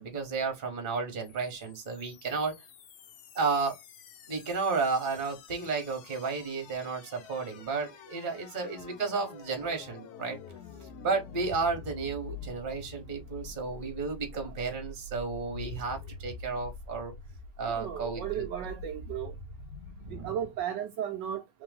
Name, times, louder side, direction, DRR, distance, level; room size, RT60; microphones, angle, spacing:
voice 1, 0.0-2.5 3.3-3.8 4.3-10.4 10.8-17.1 17.6-18.5 20.0-20.3, right 4 dB, 30° right, 1.1 m, -32 dB
sound 1, 1.2-20.2, left 3 dB, 70° left, 0.9 m, -46 dB
voice 2, 17.7-19.3 20.1-21.6, right 9 dB, 75° right, 1.1 m, -35 dB
3.4 x 3.0 x 3.5 m
omnidirectional pair, 2.1 m